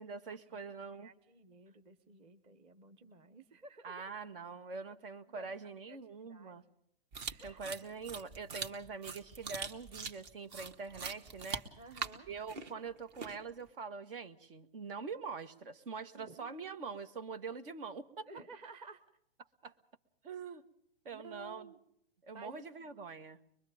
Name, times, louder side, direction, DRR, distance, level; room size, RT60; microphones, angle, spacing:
voice 1, 0.0-1.1 3.8-6.6 7.2-11.7 12.3-18.3 19.6-19.7 20.2-20.6 21.1-21.7 22.2-23.4, right 5 dB, 60° right, 10 dB, 1.9 m, -44 dB
voice 2, 0.5-4.0 5.3-6.6 7.3-7.6 11.8-12.3 16.1-16.7 18.3-19.0 21.1-21.8 22.3-22.9, right 3 dB, 20° right, 9 dB, 1.1 m, -54 dB
sound 1, 7.1-13.6, right 5 dB, 45° right, 2.2 m, -43 dB
23.5 x 22.5 x 5.2 m, 0.70 s
hypercardioid pair, 145°, 31 cm